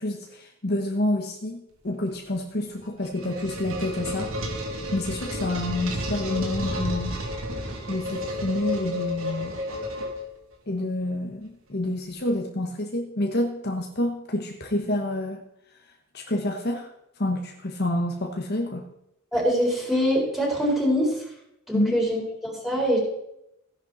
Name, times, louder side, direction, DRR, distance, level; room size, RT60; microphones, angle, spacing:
voice 1, 0.0-4.3 4.9-7.2 7.9-9.6 10.7-15.4 16.1-16.9 17.2-18.9 21.7-22.0, left 1 dB, 50° left, 2 dB, 1.3 m, -28 dB
sound 1, 2.8-10.5, left 1 dB, 75° right, 2.6 m, -31 dB
voice 2, 19.3-21.2 21.7-23.0, equal, ahead, -3 dB, 4.2 m, -24 dB
15.5 x 10.5 x 4.1 m, 0.81 s
head